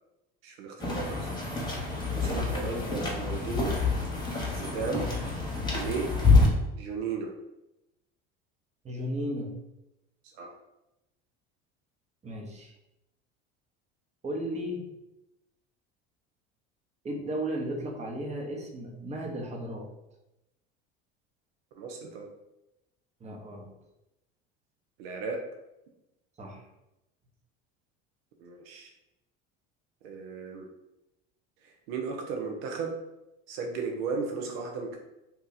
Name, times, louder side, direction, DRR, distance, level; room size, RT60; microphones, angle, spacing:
voice 1, 0.4-1.3 2.1-3.7 4.5-5.1 5.7-6.1 6.8-7.3 10.3-10.5 21.8-22.3 25.0-25.4 28.4-28.9 30.0-30.7 31.6-32.9 33.5-35.0, right 5 dB, 80° right, 2 dB, 0.6 m, -35 dB
sound 1, 0.8-6.5, left 3 dB, 15° left, 1.1 m, -27 dB
voice 2, 2.2-3.1 8.8-9.5 12.2-12.7 14.2-14.9 17.0-19.9 23.2-23.7 26.4-26.7, right 1 dB, 25° right, 1 dB, 0.8 m, -35 dB
2.8 x 2.3 x 3.9 m, 0.92 s
supercardioid pair, 90°, 30 cm